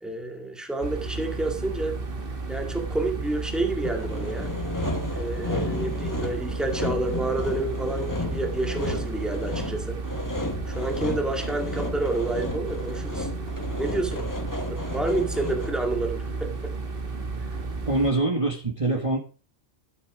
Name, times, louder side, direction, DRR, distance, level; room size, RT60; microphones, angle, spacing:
voice 1, 0.0-2.0 2.5-4.5 5.1-10.0 10.7-13.3 13.8-14.3 14.7-16.7, right 2 dB, ahead, 2.0 m, -29 dB
sound 1, 0.8-18.1, right 3 dB, 45° right, 1.7 m, -33 dB
Sawing, 3.8-15.9, left 2 dB, 15° left, 1.4 m, -33 dB
voice 2, 17.8-19.2, right 2 dB, 25° right, 1.6 m, -24 dB
13.0 x 8.1 x 4.9 m
omnidirectional pair, 1.3 m